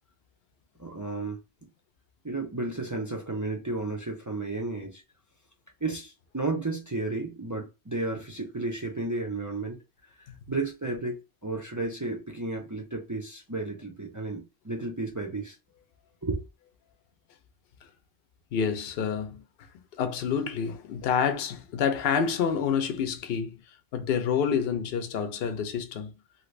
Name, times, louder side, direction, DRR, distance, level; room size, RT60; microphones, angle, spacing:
voice 1, 0.8-1.4 2.2-5.0 5.8-9.8 10.2-15.6 16.2-16.4, right 2 dB, 30° right, 0.3 m, -33 dB
voice 2, 18.5-19.4 20.0-23.6 23.9-26.1, left 7 dB, 65° left, 0.8 m, -28 dB
2.8 x 2.5 x 3.1 m
omnidirectional pair, 1.2 m